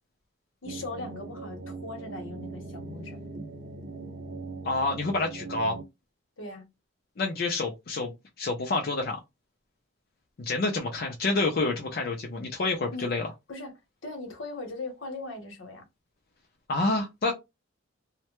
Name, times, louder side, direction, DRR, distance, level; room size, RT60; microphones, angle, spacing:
voice 1, 0.6-3.2 6.4-6.6 12.9-13.1 13.5-13.7 14.0-15.8, left 2 dB, 85° left, 1.0 m, -39 dB
sound 1, 0.6-5.8, right 3 dB, 45° right, 0.4 m, -40 dB
voice 2, 4.6-5.8 7.2-8.1 8.4-9.2 10.4-13.3 16.7-17.3, left 2 dB, 50° left, 0.5 m, -28 dB
2.1 x 2.1 x 2.9 m
head